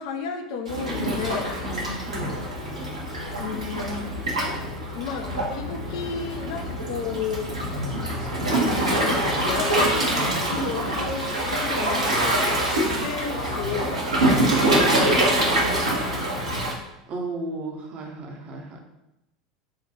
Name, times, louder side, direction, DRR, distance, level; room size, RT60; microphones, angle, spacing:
voice 1, 0.0-1.6 3.4-4.1 4.9-7.6 8.2-12.4 13.0-13.9 14.1-16.4, left 6 dB, 55° left, 5 dB, 0.5 m, -34 dB
Waves surf, 0.7-16.7, right 1 dB, 80° right, 0.8 m, -25 dB
voice 2, 1.6-2.3 17.1-18.8, right 2 dB, 40° right, 1 dB, 0.7 m, -34 dB
3.7 x 2.3 x 4.0 m, 0.91 s
figure-of-eight pair, 80°, 3 cm